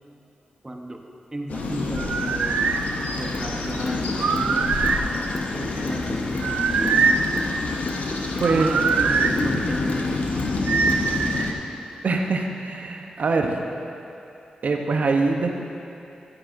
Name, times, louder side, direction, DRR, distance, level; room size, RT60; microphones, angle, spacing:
voice 1, 0.6-1.0 1.3-2.7 3.1-4.7 5.5-7.1 8.5-11.6, right 1 dB, 20° right, 2 dB, 1.0 m, -34 dB
sound 1, 1.5-11.5, left 3 dB, 80° left, 0.8 m, -28 dB
sound 2, 2.0-2.8 4.1-5.1 6.4-7.2 8.4-9.3 10.7-11.5, right 5 dB, 90° right, 0.4 m, -23 dB
sound 3, 3.3-3.5 3.8-4.5 4.8-5.0 5.3-5.5 5.8-6.5 6.8-7.0 7.4-7.5 7.9-8.6 8.9-9.1 9.4-9.6 9.9-10.5 10.9-11.1, left 3 dB, 45° left, 0.7 m, -33 dB
voice 2, 8.4-8.7 12.0-13.6 14.6-15.6, right 3 dB, 65° right, 3 dB, 0.8 m, -23 dB
11.5 x 9.6 x 2.6 m, 2.8 s
cardioid pair, 60°, 3 cm